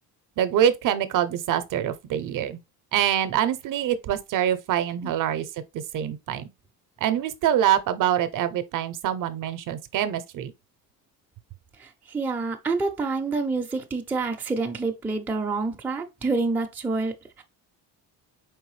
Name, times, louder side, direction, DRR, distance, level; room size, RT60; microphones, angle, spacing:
voice 1, 0.4-2.6 2.9-6.5 7.0-10.5, right 10 dB, 55° right, 0.6 m, -25 dB
voice 2, 11.8-17.4, right 3 dB, 5° right, 0.4 m, -28 dB
4.7 x 3.4 x 3.1 m
cardioid pair, 155°, 39 cm